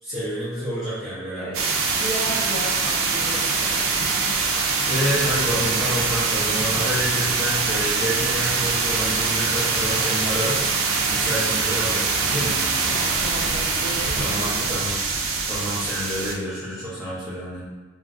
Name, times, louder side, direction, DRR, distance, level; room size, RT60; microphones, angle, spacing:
voice 1, 0.0-1.7 4.9-10.6 11.0-12.6 14.2-15.0 15.5-17.6, equal, ahead, -13 dB, 0.5 m, -28 dB
sound 1, 1.5-16.3, right 4 dB, 85° right, 0.4 m, -23 dB
voice 2, 2.0-4.3 12.9-14.8, equal, 25° left, -10 dB, 1.2 m, -34 dB
3.0 x 2.5 x 2.4 m, 1.3 s
head